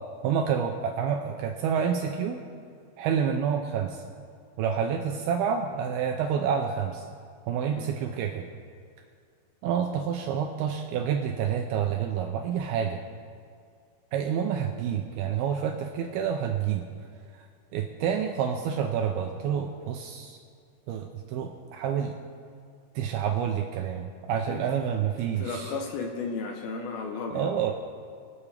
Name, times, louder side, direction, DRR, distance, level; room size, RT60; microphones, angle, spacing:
voice 1, 0.2-2.4 3.0-4.0 4.6-7.1 7.5-8.5 9.6-13.0 14.1-16.9 17.7-20.4 20.9-22.2 23.0-25.7 27.3-27.7, right 8 dB, 85° right, 4 dB, 2.3 m, -28 dB
voice 2, 25.2-27.5, left 4 dB, 75° left, 3 dB, 2.5 m, -34 dB
25.0 x 8.4 x 3.4 m, 2.2 s
omnidirectional pair, 5.0 m